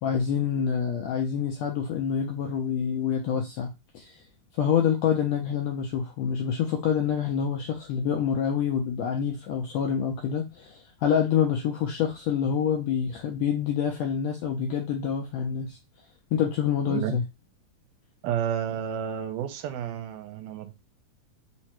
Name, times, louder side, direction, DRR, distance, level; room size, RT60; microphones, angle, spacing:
voice 1, 0.0-4.2 4.6-15.8 16.3-17.2, left 8 dB, 80° left, 1.5 m, -27 dB
voice 2, 16.9-17.2 18.2-20.8, right 9 dB, 90° right, 2.2 m, -31 dB
4.9 x 2.2 x 4.3 m
omnidirectional pair, 3.6 m